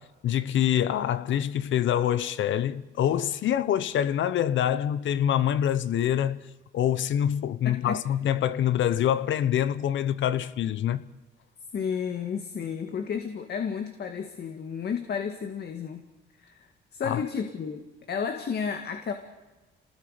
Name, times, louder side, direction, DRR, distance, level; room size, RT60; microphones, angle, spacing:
voice 1, 0.0-6.5 6.7-11.0 17.0-17.2, left 10 dB, 70° left, 1.0 m, -25 dB
voice 2, 7.6-8.0 11.7-16.0 16.4-19.1, left 6 dB, 55° left, 1.9 m, -32 dB
28.0 x 19.5 x 5.1 m
cardioid pair, 90°, 20 cm